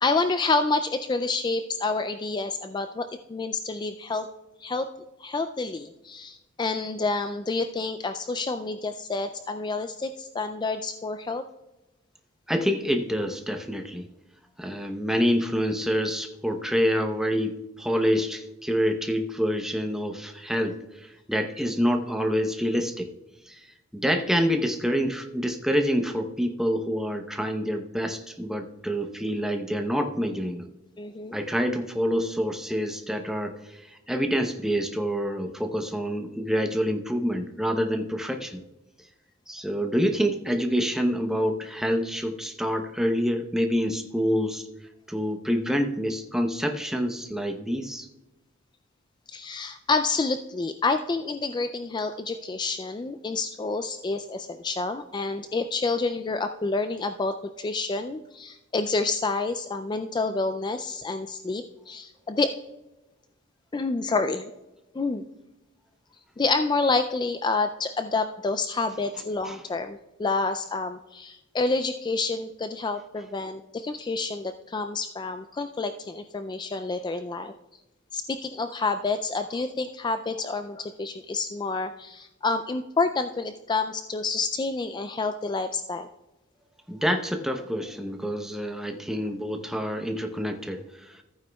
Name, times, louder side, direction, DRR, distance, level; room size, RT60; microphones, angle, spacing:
voice 1, 0.0-4.3 4.6-4.9 5.2-11.4 31.0-31.4 49.3-62.5 63.7-64.5 64.9-65.2 66.4-77.5 78.1-86.1, left 3 dB, 20° left, 9 dB, 0.3 m, -28 dB
voice 2, 12.5-14.1 14.6-23.1 23.5-23.7 23.9-30.7 31.3-38.6 39.5-44.7 45.1-48.1 69.4-69.6 86.9-91.2, equal, ahead, 4 dB, 0.8 m, -27 dB
14.5 x 9.2 x 2.3 m, 1.0 s
head